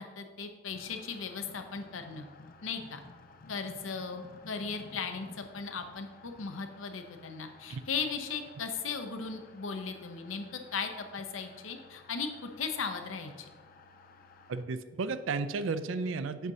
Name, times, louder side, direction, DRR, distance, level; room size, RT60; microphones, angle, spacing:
voice 1, 0.0-2.2 2.6-3.0 3.5-13.5, left 5 dB, 85° left, 6 dB, 0.7 m, -37 dB
sound 1, 0.7-14.6, left 3 dB, 45° left, 0.5 m, -55 dB
voice 2, 14.5-16.5, right 4 dB, 75° right, 12 dB, 0.4 m, -33 dB
7.9 x 2.8 x 6.1 m, 1.4 s
head